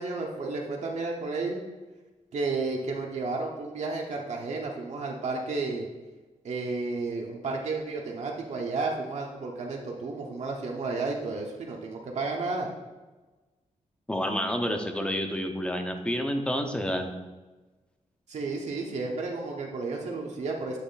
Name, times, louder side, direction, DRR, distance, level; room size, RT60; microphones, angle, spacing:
voice 1, 0.0-1.6 2.3-5.9 6.4-12.7 18.3-20.8, right 3 dB, 60° right, 0 dB, 0.8 m, -32 dB
voice 2, 14.1-17.1, equal, 10° left, 5 dB, 0.6 m, -29 dB
8.3 x 3.1 x 3.9 m, 1.2 s
wide cardioid pair, 135°, 13 cm